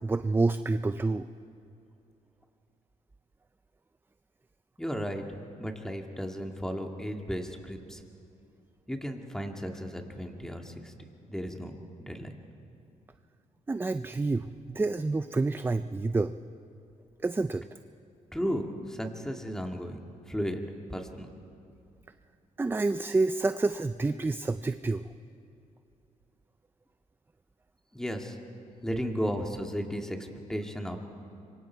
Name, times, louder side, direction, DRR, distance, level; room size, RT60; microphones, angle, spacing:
voice 1, 0.0-1.3 13.7-14.5 14.8-16.3 17.2-17.6 22.6-25.0, right 3 dB, 15° right, 11 dB, 0.5 m, -28 dB
voice 2, 4.8-5.2 5.6-8.0 8.9-10.9 11.3-11.8 12.1-12.3 18.3-20.0 20.3-20.6 20.9-21.3 27.9-28.4 28.8-31.0, equal, 5° left, 3 dB, 2.2 m, -34 dB
26.0 x 24.0 x 4.6 m, 2.7 s
cardioid pair, 95°, 13 cm